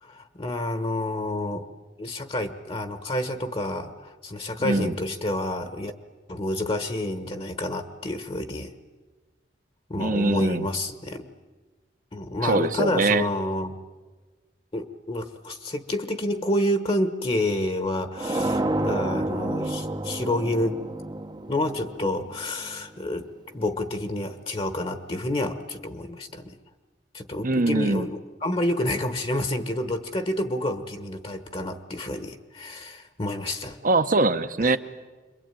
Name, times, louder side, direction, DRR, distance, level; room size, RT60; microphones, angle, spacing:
voice 1, 0.0-1.6 2.0-5.9 6.3-8.7 9.9-11.3 12.1-13.7 14.7-20.8 21.5-23.3 23.5-26.6 27.1-33.8 34.6-34.8, left 1 dB, 35° left, 9 dB, 1.2 m, -29 dB
voice 2, 4.6-4.9 10.0-10.7 12.4-13.3 27.4-28.1 33.8-34.8, right 2 dB, 50° right, 11 dB, 1.0 m, -22 dB
sound 1, 18.2-22.9, right 1 dB, 25° right, 0.8 m, -29 dB
26.5 x 22.5 x 9.0 m, 1.3 s
head